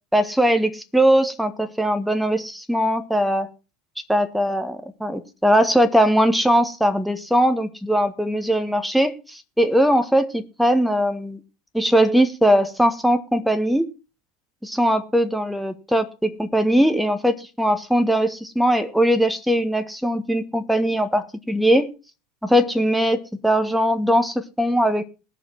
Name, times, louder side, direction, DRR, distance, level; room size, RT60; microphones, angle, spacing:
voice 1, 0.1-3.5 4.1-11.4 11.7-13.9 14.6-21.9 22.4-25.0, equal, ahead, 8 dB, 1.5 m, -20 dB
19.5 x 6.6 x 4.6 m, 0.32 s
figure-of-eight pair, 75°, 0 cm